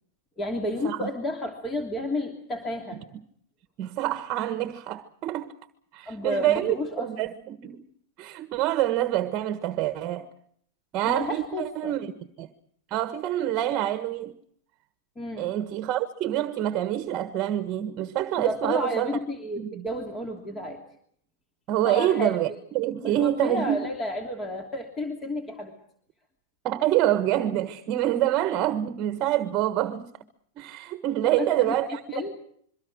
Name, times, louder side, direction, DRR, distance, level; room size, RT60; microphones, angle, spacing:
voice 1, 0.4-3.0 6.0-7.1 11.0-12.0 15.2-15.5 18.4-20.8 21.8-22.4 23.0-25.7 31.2-32.3, left 1 dB, 20° left, 3.0 m, -31 dB
voice 2, 3.8-5.5 5.9-7.9 8.2-10.3 10.9-12.1 12.4-12.5 12.9-14.3 15.4-19.2 19.6-19.9 21.7-22.5 22.7-23.9 26.6-30.1 30.6-32.0, right 13 dB, 35° right, 1.4 m, -26 dB
26.5 x 23.5 x 6.3 m
supercardioid pair, 145°, 0 cm